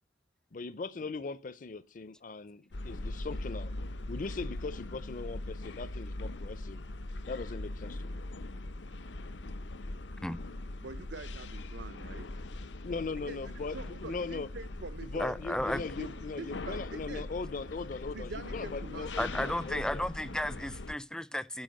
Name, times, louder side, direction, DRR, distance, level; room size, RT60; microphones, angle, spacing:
voice 1, 0.5-3.7 4.1-6.8 7.3-8.2 12.8-14.5 15.0-20.0, left 4 dB, 45° left, 0.6 m, -39 dB
sound 1, 2.7-20.9, left 2 dB, 80° left, 0.8 m, -41 dB
voice 2, 10.8-12.4 13.3-15.3 16.0-17.3 18.1-19.5, right 3 dB, 70° right, 0.7 m, -45 dB
voice 3, 15.2-15.8 19.2-21.6, left 1 dB, 5° left, 0.5 m, -33 dB
10.5 x 5.7 x 7.7 m
head